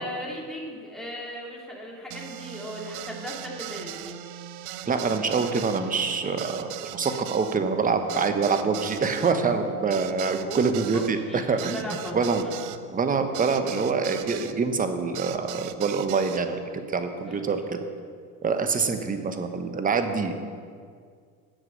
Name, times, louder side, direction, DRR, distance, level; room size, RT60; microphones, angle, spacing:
voice 1, 0.0-4.1 10.4-12.5 17.3-17.5, equal, ahead, -4 dB, 2.8 m, -37 dB
sound 1, 2.1-14.6 15.1-16.4, right 12 dB, 55° right, 0.6 m, -39 dB
voice 2, 4.9-12.4 12.9-17.8 18.4-20.4, right 4 dB, 20° right, 7 dB, 1.0 m, -26 dB
10.0 x 7.4 x 6.3 m, 2.1 s
hypercardioid pair, 95°, 46 cm